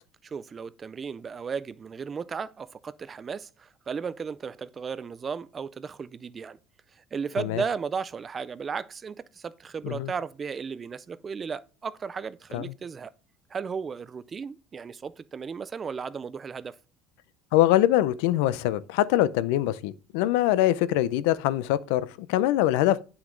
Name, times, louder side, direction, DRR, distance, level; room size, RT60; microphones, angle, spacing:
voice 1, 0.2-6.6 7.0-13.1 13.5-16.8, right 6 dB, 20° right, 0.3 m, -35 dB
voice 2, 17.5-23.0, left 14 dB, 80° left, 0.5 m, -23 dB
9.6 x 6.0 x 3.8 m
cardioid pair, 175°, 0 cm